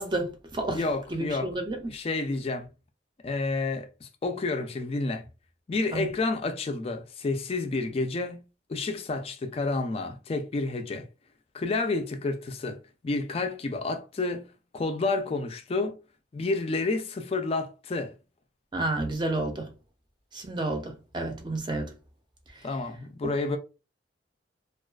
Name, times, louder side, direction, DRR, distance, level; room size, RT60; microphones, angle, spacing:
voice 1, 0.0-0.8 1.1-1.8 5.9-6.1 18.7-19.7 20.3-21.9 22.5-22.7 23.2-23.3, right 2 dB, 25° right, 0.5 m, -30 dB
voice 2, 0.7-1.5 1.9-2.7 3.2-5.3 5.7-8.4 8.7-11.1 11.5-12.8 13.0-16.0 16.3-18.1 22.6-23.6, left 3 dB, 35° left, 0.3 m, -30 dB
2.3 x 2.2 x 2.3 m
head